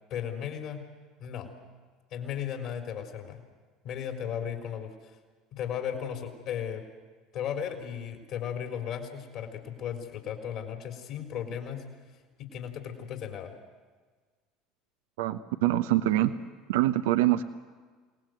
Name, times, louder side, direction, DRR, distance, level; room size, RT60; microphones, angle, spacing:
voice 1, 0.1-0.8 1.2-1.5 2.1-3.4 3.8-5.2 5.5-6.8 7.3-11.8 12.4-13.6, left 8 dB, 60° left, 3 dB, 3.9 m, -35 dB
voice 2, 15.2-16.3 16.7-17.4, right 15 dB, 70° right, 10 dB, 0.9 m, -24 dB
28.0 x 19.0 x 7.9 m, 1.4 s
hypercardioid pair, 70°, 0 cm